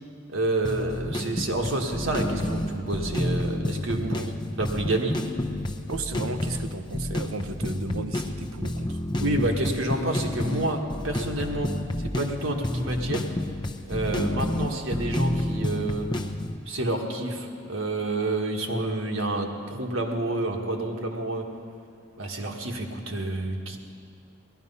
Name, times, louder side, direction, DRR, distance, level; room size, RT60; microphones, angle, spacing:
voice 1, 0.3-5.2 9.2-11.7 12.0-13.3 13.9-16.1 16.7-21.5 22.2-23.8, right 2 dB, 70° right, 2 dB, 1.5 m, -29 dB
sound 1, 0.6-16.6, left 1 dB, 20° left, 0.6 m, -29 dB
voice 2, 4.0-4.3 5.9-9.0, right 3 dB, 90° right, 9 dB, 0.9 m, -35 dB
17.5 x 12.5 x 5.5 m, 2.3 s
head